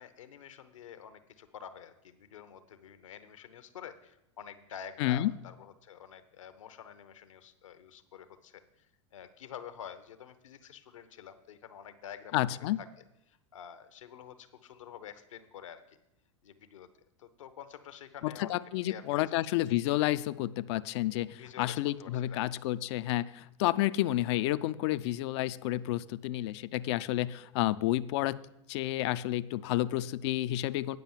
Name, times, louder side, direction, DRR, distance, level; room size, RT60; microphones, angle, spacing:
voice 1, 0.0-8.9 9.1-12.4 12.8-12.9 13.3-15.8 16.4-16.9 17.2-19.4 21.4-22.4, left 8 dB, 80° left, 11 dB, 0.9 m, -48 dB
voice 2, 5.0-5.3 12.3-12.8 18.2-31.0, left 15 dB, 60° left, 15 dB, 0.4 m, -30 dB
9.1 x 5.4 x 7.2 m, 0.87 s
hypercardioid pair, 100°, 16 cm